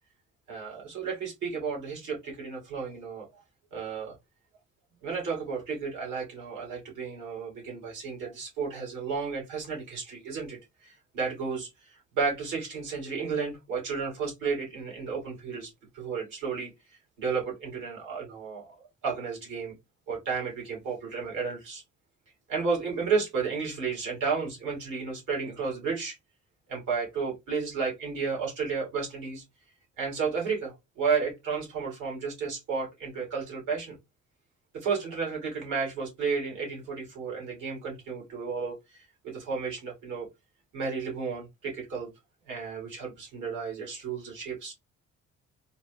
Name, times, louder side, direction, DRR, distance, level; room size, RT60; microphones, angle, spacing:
voice 1, 0.5-3.3 3.7-4.1 5.0-18.7 19.0-19.7 20.1-21.8 22.5-26.2 26.7-29.4 30.0-33.9 34.7-38.8 39.2-40.3 40.7-42.1 42.5-44.7, right 5 dB, 85° right, 2.4 m, -32 dB
4.1 x 2.1 x 3.4 m
cardioid pair, 90°, 30 cm